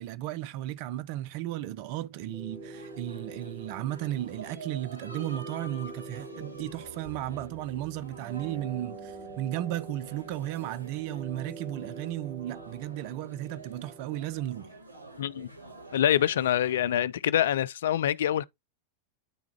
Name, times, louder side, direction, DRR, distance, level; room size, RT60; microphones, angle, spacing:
voice 1, 0.0-14.7, right 14 dB, 45° right, 0.5 m, -35 dB
sound 1, 2.2-14.2, right 3 dB, 25° right, 1.2 m, -46 dB
sound 2, 2.5-16.9, right 2 dB, 85° right, 4.4 m, -47 dB
sound 3, 6.6-10.7, right 4 dB, 15° left, 1.5 m, -55 dB
voice 2, 15.2-15.5 15.9-18.4, left 11 dB, 60° left, 0.4 m, -25 dB
10.0 x 3.5 x 2.9 m
figure-of-eight pair, 90°, 0 cm